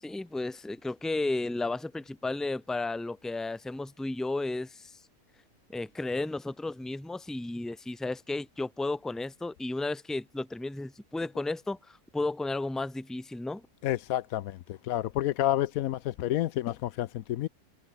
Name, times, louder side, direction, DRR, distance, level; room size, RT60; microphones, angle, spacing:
voice 1, 0.0-5.0 5.7-13.6, left 2 dB, ahead, 0.9 m, -33 dB
voice 2, 13.8-17.5, left 13 dB, 80° left, 1.0 m, -29 dB
omnidirectional pair, 1.5 m